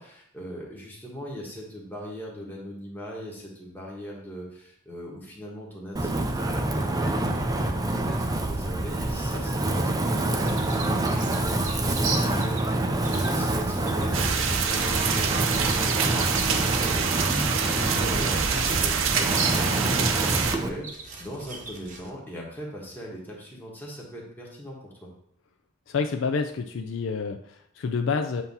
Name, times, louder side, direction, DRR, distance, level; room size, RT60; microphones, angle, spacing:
voice 1, 0.0-20.9 21.2-25.1, equal, 10° left, -3 dB, 1.4 m, -40 dB
Wind, 6.0-20.7, right 1 dB, 15° right, 0.4 m, -27 dB
sound 1, 10.4-22.1, right 4 dB, 35° right, 0.8 m, -39 dB
sound 2, 14.1-20.5, right 6 dB, 65° right, 0.6 m, -26 dB
voice 2, 25.9-28.4, left 5 dB, 60° left, 5 dB, 0.4 m, -28 dB
8.0 x 2.8 x 5.4 m, 0.70 s
head